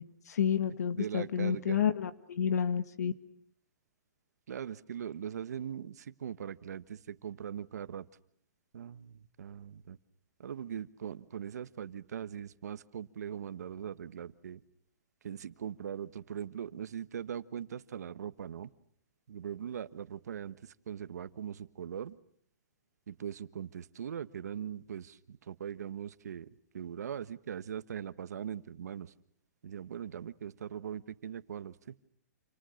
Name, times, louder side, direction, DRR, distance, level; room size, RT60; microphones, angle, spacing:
voice 1, 0.3-3.1, left 8 dB, 75° left, 11 dB, 1.9 m, -30 dB
voice 2, 0.9-1.8 4.5-8.1 8.7-10.0 10.4-14.6 15.2-18.7 19.3-22.2 23.1-26.5 26.7-29.1 29.6-31.9, right 8 dB, 75° right, 13 dB, 1.3 m, -41 dB
28.5 x 28.0 x 6.5 m, 0.66 s
hypercardioid pair, 155°, 9 cm